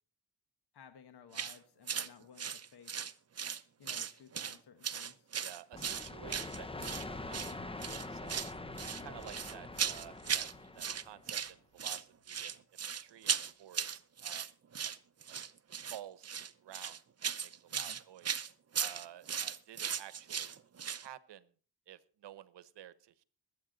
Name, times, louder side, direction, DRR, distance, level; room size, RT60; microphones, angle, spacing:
voice 1, 0.7-3.1 3.8-5.3 17.7-18.0, left 7 dB, 65° left, 9 dB, 1.3 m, -57 dB
sound 1, 1.3-1.6 1.9-2.1 2.4-3.6 3.9-4.6 4.8-7.0 7.3-7.5 7.8-8.5 8.8-10.5 10.8-11.5 11.8-21.1, right 7 dB, 35° right, 0.8 m, -37 dB
voice 2, 5.4-8.5 9.0-10.5 10.7-12.5 13.0-14.5 14.8-14.9 15.3-15.4 15.9-16.3 16.6-18.4 18.8-20.6 21.0-21.5 21.9-23.2, right 11 dB, 75° right, 16 dB, 1.0 m, -52 dB
sound 2, 5.7-11.3, left 2 dB, 15° left, 0.7 m, -44 dB
sound 3, 6.5-14.0 14.2-14.3, left 1 dB, 45° left, 5.9 m, -66 dB
21.5 x 8.6 x 3.9 m, 0.40 s
cardioid pair, 80°, 42 cm